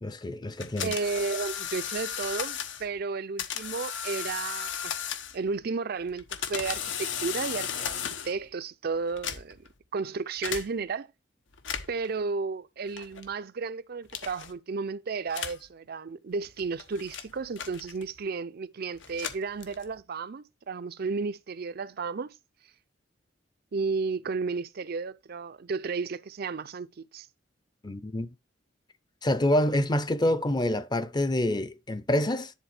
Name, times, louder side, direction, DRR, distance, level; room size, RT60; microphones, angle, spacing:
voice 1, 0.0-0.9 27.8-28.3 29.2-32.5, left 1 dB, 25° left, 0.6 m, -27 dB
sound 1, 0.6-2.9 3.4-5.5 6.1-8.4 9.1-9.7 10.4-10.7 11.5-12.1 13.0-13.3 14.1-14.5 15.3-15.7 16.4-18.2 19.0-20.0, left 8 dB, 80° left, 1.1 m, -35 dB
voice 2, 0.8-4.9 5.3-9.6 9.9-11.1 11.9-22.3 23.7-26.9 27.1-27.3, right 4 dB, 55° right, 0.5 m, -33 dB
10.5 x 4.0 x 4.3 m
head